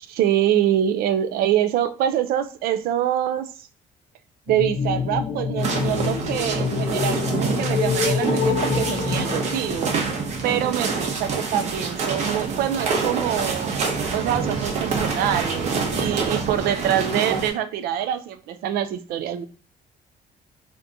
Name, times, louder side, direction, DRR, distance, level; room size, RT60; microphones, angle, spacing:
voice 1, 0.1-3.7 4.5-9.9 10.4-13.7 14.1-19.4, right 10 dB, 85° right, 0.4 m, -25 dB
sound 1, 4.5-10.4, left 5 dB, 60° left, 0.6 m, -26 dB
sound 2, 5.6-17.5, right 4 dB, 50° right, 0.8 m, -26 dB
3.5 x 2.6 x 2.6 m
cardioid pair, 175°, 15 cm